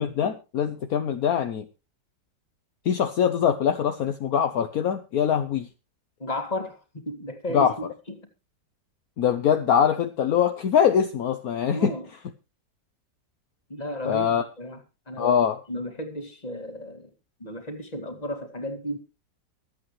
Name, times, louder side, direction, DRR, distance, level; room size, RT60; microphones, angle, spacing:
voice 1, 0.0-1.6 2.8-5.7 7.5-7.7 9.2-11.9 14.0-14.4 15.2-15.6, left 8 dB, 60° left, 1.3 m, -23 dB
voice 2, 6.2-7.7 8.2-8.3 11.7-12.1 13.7-14.8 15.1-15.4 15.7-17.1 17.4-19.0, equal, 25° left, 2.2 m, -34 dB
24.0 x 8.4 x 3.1 m
omnidirectional pair, 1.8 m